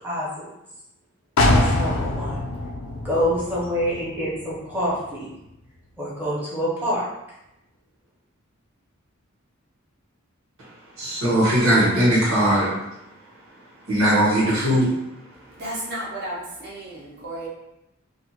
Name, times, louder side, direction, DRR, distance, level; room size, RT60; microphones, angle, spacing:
voice 1, 0.0-0.5 1.4-2.4 3.0-5.3 6.0-7.1, equal, 10° right, -8 dB, 0.8 m, -26 dB
sound 1, 1.4-5.1 5.5-5.6, left 1 dB, 75° left, 0.4 m, -24 dB
voice 2, 11.0-12.7 13.9-14.9, equal, 85° right, -9 dB, 1.0 m, -19 dB
voice 3, 15.5-17.5, right 1 dB, 50° right, -5 dB, 0.8 m, -33 dB
2.6 x 2.4 x 2.8 m, 0.88 s
head